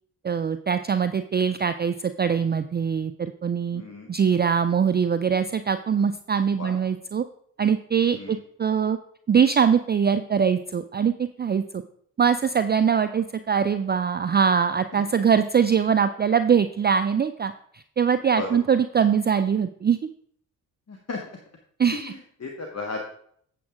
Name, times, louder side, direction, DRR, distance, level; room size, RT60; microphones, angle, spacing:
voice 1, 0.2-3.8 4.1-7.2 7.6-9.0 9.3-11.8 12.2-20.0 21.8-22.1, right 7 dB, 25° right, 11 dB, 0.5 m, -22 dB
voice 2, 3.7-4.1 6.6-6.8 8.1-8.4 14.9-15.0 18.3-18.6 20.9-21.2 21.9-23.1, left 3 dB, 35° left, 1 dB, 1.5 m, -34 dB
8.5 x 7.5 x 3.6 m, 0.64 s
hypercardioid pair, 40°, 45 cm